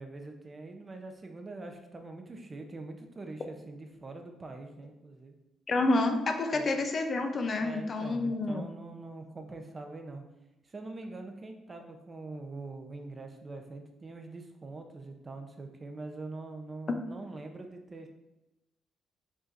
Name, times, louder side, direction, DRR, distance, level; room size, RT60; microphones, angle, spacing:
voice 1, 0.0-5.4 6.5-6.6 7.6-10.2 10.6-18.1, right 3 dB, 30° right, 4 dB, 0.6 m, -43 dB
voice 2, 5.7-8.6 16.9-17.0, left 2 dB, 40° left, 5 dB, 0.5 m, -28 dB
5.2 x 3.7 x 2.5 m, 0.96 s
cardioid pair, 90°, 0 cm